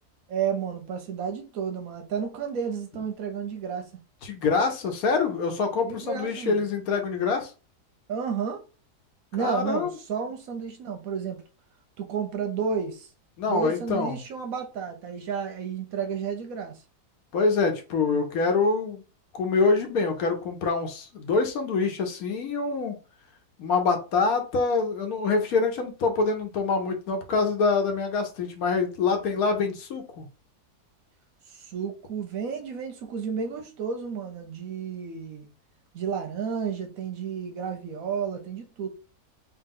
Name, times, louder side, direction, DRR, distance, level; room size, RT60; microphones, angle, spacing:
voice 1, 0.3-3.9 5.8-6.6 8.1-8.6 9.3-11.4 12.0-13.1 13.5-16.8 31.5-35.5 35.9-38.9, right 6 dB, 70° right, 0.9 m, -31 dB
voice 2, 4.2-7.5 9.4-9.9 13.4-14.2 17.3-19.0 19.3-22.9 23.6-30.3, left 4 dB, 65° left, 1.2 m, -25 dB
3.0 x 2.9 x 3.6 m
omnidirectional pair, 1.7 m